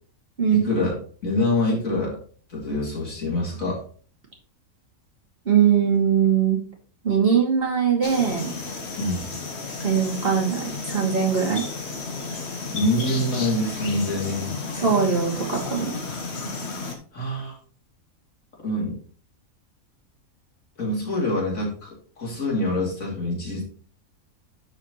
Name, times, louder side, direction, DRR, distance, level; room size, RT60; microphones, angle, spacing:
voice 1, 0.5-1.0 1.2-2.2 2.5-3.8 9.0-9.3 12.7-14.6 17.1-17.6 18.6-19.0 20.8-23.6, left 1 dB, 70° left, -3 dB, 3.3 m, -25 dB
voice 2, 5.5-6.6 7.0-8.5 9.8-11.6 14.8-16.0, right 7 dB, 40° right, -2 dB, 2.5 m, -21 dB
sound 1, 8.0-16.9, left 4 dB, 50° left, 1.5 m, -33 dB
11.5 x 5.0 x 3.1 m, 0.43 s
omnidirectional pair, 1.5 m